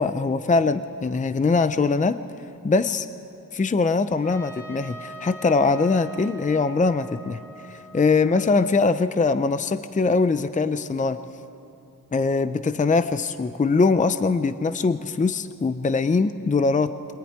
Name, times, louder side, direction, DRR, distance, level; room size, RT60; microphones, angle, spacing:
voice 1, 0.0-2.2 2.6-3.1 3.5-7.4 7.7-11.2 12.1-16.9, left 4 dB, 25° left, 11 dB, 0.6 m, -22 dB
Trumpet, 4.2-9.1, right 1 dB, 5° left, 3.2 m, -43 dB
24.5 x 20.5 x 9.6 m, 2.8 s
wide cardioid pair, 135°, 33 cm